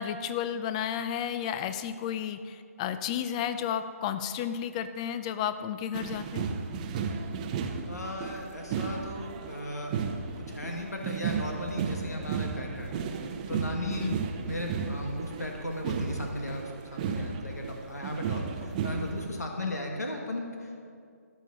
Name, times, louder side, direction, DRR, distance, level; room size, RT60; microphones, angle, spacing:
voice 1, 0.0-6.5 14.0-14.2 19.6-19.7, left 9 dB, 25° left, 11 dB, 0.5 m, -32 dB
sound 1, 5.9-19.3, right 5 dB, 25° right, 0.8 m, -34 dB
voice 2, 7.9-9.9 10.4-14.1 14.4-20.9, left 1 dB, 85° left, 1 dB, 1.8 m, -36 dB
13.5 x 11.0 x 3.9 m, 2.3 s
figure-of-eight pair, 150°, 9 cm